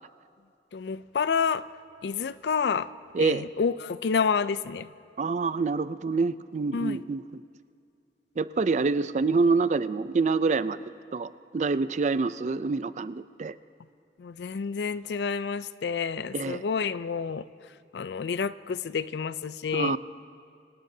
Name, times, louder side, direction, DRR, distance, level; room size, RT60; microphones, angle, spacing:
voice 1, 0.7-1.7 2.0-2.9 3.2-4.9 6.7-7.0 14.2-17.5 17.9-20.0, left 6 dB, 70° left, 16 dB, 0.4 m, -29 dB
voice 2, 3.1-3.5 5.2-7.2 8.4-10.8 11.1-13.5 16.3-16.6 19.7-20.0, right 4 dB, 40° right, 15 dB, 0.4 m, -26 dB
26.5 x 18.0 x 2.7 m, 2.5 s
head